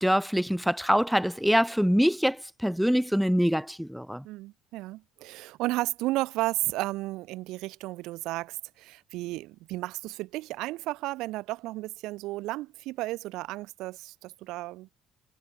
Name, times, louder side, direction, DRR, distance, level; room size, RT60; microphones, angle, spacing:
voice 1, 0.0-4.2, equal, ahead, 1.1 m, -24 dB
voice 2, 4.2-15.1, right 18 dB, 80° right, 3.6 m, -33 dB
cardioid pair, 170°, 0 cm